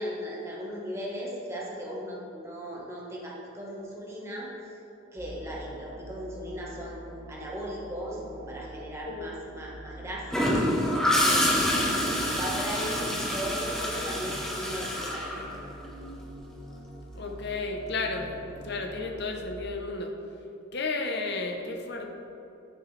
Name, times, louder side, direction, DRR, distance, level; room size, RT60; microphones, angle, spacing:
voice 1, 0.0-4.5 5.1-7.0 7.3-10.6 11.2-11.8 12.3-15.6, equal, 15° right, -4 dB, 1.4 m, -37 dB
sound 1, 5.2-19.4, right 1 dB, 45° right, 1.8 m, -45 dB
Gurgling / Toilet flush, 10.3-16.0 18.1-18.3, left 1 dB, 5° left, 1.1 m, -27 dB
voice 2, 17.2-18.3 18.6-20.1 20.7-22.1, left 3 dB, 55° left, 3 dB, 0.8 m, -32 dB
10.0 x 6.4 x 3.3 m, 2.9 s
head